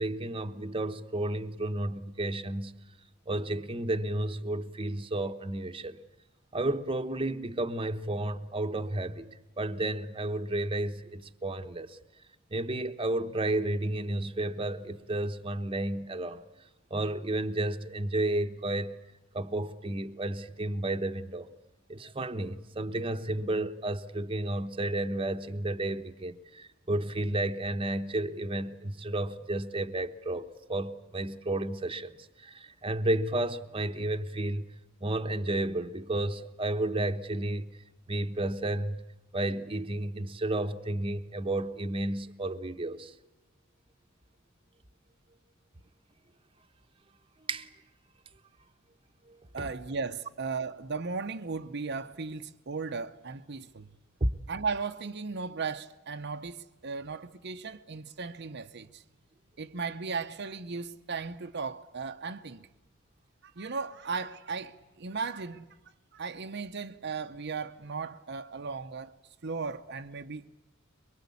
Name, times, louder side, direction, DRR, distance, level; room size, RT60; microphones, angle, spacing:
voice 1, 0.0-2.7 3.3-6.0 6.5-12.0 12.5-16.4 16.9-18.9 19.3-21.5 21.9-32.1 32.4-34.7 35.0-37.7 38.1-39.0 39.3-43.1 47.5-47.7 49.3-49.7 54.2-54.3, right 1 dB, 25° right, 1.0 m, -32 dB
voice 2, 49.5-53.9 54.5-59.0 59.6-62.7 63.6-65.7 66.1-69.1 69.4-70.5, right 4 dB, 55° right, 0.8 m, -36 dB
23.5 x 23.5 x 8.4 m
head